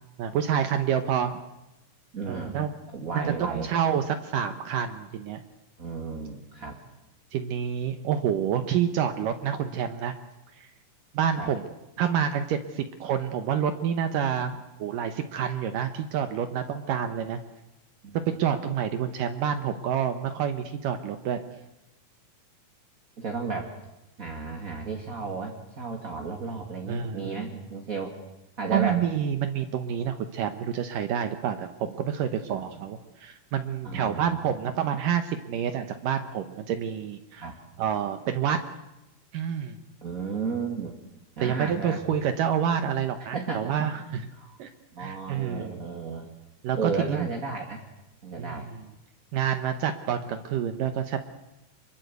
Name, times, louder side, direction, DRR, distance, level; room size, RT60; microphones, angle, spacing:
voice 1, 0.2-1.4 2.3-2.7 3.1-5.4 7.3-10.2 11.1-11.6 12.0-17.4 18.1-21.4 26.9-27.5 28.7-37.5 37.8-38.6 39.3-39.8 41.4-44.3 44.6-44.7 45.0-45.8 46.6-47.3 48.4-48.8 49.3-51.2, right 8 dB, 70° right, 8 dB, 2.6 m, -28 dB
voice 2, 2.1-2.6 2.9-3.7 5.8-6.8 11.4-11.5 18.0-18.1 23.2-23.7 24.2-28.2 28.6-29.0 32.7-32.8 33.8-34.5 37.4-37.6 40.0-41.0 41.4-42.0 43.3-44.6 44.9-46.3 46.7-47.8 48.2-48.7, right 4 dB, 25° right, 2 dB, 2.2 m, -33 dB
27.0 x 22.5 x 8.2 m, 0.96 s
omnidirectional pair, 4.2 m